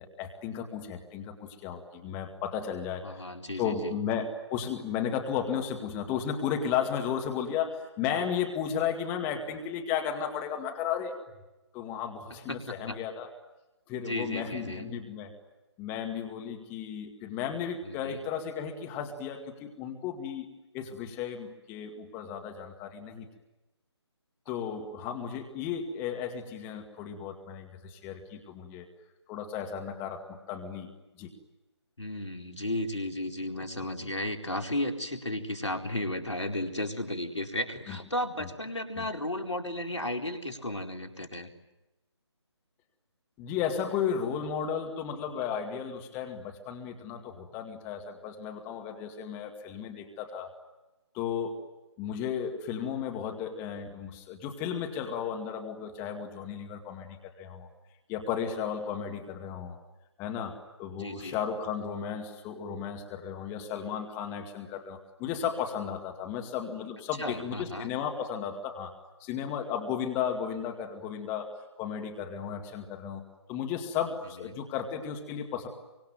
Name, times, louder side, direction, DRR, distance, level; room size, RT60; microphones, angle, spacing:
voice 1, 0.0-3.2 3.6-11.1 11.7-13.3 13.9-15.3 15.8-20.5 20.7-23.3 24.5-28.9 29.3-30.9 31.2-31.3 37.9-38.0 39.0-39.1 43.4-50.5 51.1-51.6 52.0-57.7 58.1-59.8 60.2-68.9 69.2-75.7, left 8 dB, 15° left, 4 dB, 2.2 m, -34 dB
voice 2, 3.0-4.0 12.3-13.0 14.0-14.9 17.8-18.2 32.0-41.5 60.9-61.4 67.2-67.9 74.4-74.5, left 1 dB, 80° left, 4 dB, 4.3 m, -34 dB
25.0 x 25.0 x 9.3 m, 1.0 s
figure-of-eight pair, 150°, 15 cm